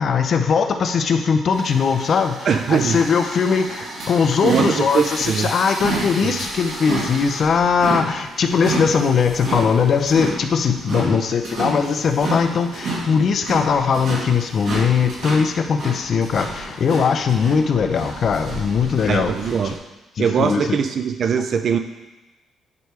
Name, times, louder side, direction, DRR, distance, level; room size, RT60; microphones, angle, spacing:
voice 1, 0.0-19.3 19.6-19.7 20.2-20.6, left 6 dB, 55° left, 7 dB, 0.6 m, -20 dB
sound 1, 1.5-19.8, right 2 dB, 75° right, 2.4 m, -30 dB
voice 2, 2.5-3.0 4.4-5.5 6.2-6.3 11.1-11.2 19.1-19.8 20.2-21.8, right 6 dB, 60° right, 8 dB, 0.4 m, -21 dB
9.6 x 3.3 x 4.6 m, 1.1 s
cardioid pair, 90°, 0 cm